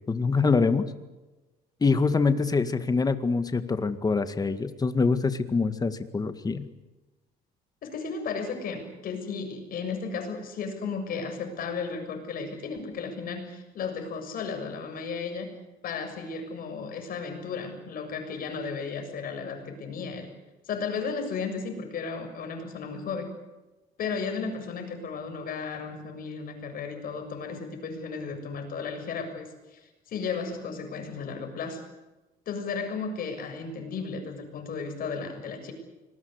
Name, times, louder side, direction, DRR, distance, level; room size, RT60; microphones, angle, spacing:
voice 1, 0.1-0.9 1.8-6.7, left 4 dB, 20° left, 10 dB, 1.9 m, -25 dB
voice 2, 7.8-15.5 15.8-20.3 20.7-23.3 24.0-29.8 30.1-31.8 32.5-35.7, left 5 dB, 60° left, 5 dB, 7.1 m, -34 dB
26.0 x 20.5 x 8.2 m, 1.1 s
cardioid pair, 110°, 17 cm